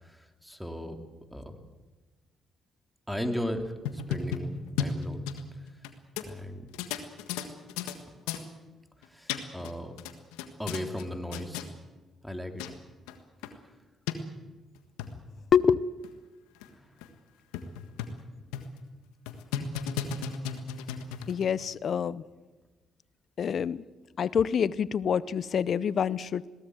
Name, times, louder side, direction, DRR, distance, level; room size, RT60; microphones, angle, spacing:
voice 1, 0.0-1.0 1.3-1.6 3.1-5.3 6.2-6.6 9.0-9.9 10.6-11.6 12.2-12.6 16.7-17.0, equal, ahead, 5 dB, 3.2 m, -36 dB
sound 1, 3.7-5.9 6.2-6.3 6.7-8.0 8.3-8.4 9.0-9.7 10.0-11.0 11.3-11.7 12.3-12.4 12.6-12.7 13.1-13.2 13.4-13.5 14.1-14.2 14.8-15.1 15.6-15.7 16.0-16.1 16.6-16.7 17.0-17.1 17.5-18.2 18.5-18.8 19.3-21.4, left 7 dB, 90° left, 1.6 m, -34 dB
voice 2, 15.5-15.8 21.3-22.2 23.4-23.8 24.2-26.5, left 7 dB, 60° left, 20 dB, 0.7 m, -26 dB
21.5 x 17.5 x 8.1 m, 1.2 s
supercardioid pair, 50°, 0 cm